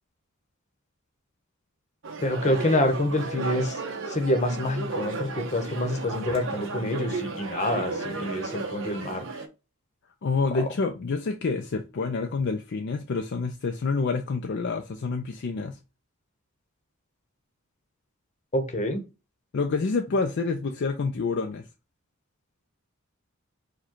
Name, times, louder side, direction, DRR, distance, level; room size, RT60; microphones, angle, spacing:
sound 1, 2.0-9.5, right 3 dB, 65° right, 0.8 m, -34 dB
voice 1, 2.2-3.8 4.1-9.2 18.5-19.0, left 1 dB, 35° left, 0.9 m, -27 dB
voice 2, 10.2-15.8 19.5-21.6, left 4 dB, 55° left, 0.4 m, -28 dB
4.7 x 2.3 x 4.4 m
head